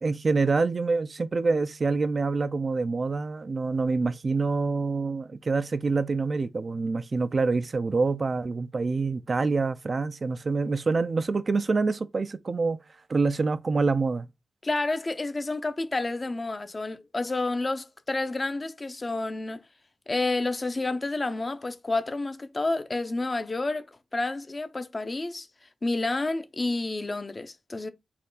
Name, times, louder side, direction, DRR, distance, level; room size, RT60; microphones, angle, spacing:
voice 1, 0.0-12.8 13.1-14.3, right 4 dB, 45° right, 0.4 m, -26 dB
voice 2, 14.6-19.6 20.1-23.9 24.1-25.5 25.8-27.9, left 2 dB, 35° left, 0.6 m, -29 dB
4.3 x 2.4 x 3.8 m
cardioid pair, 70°, 0 cm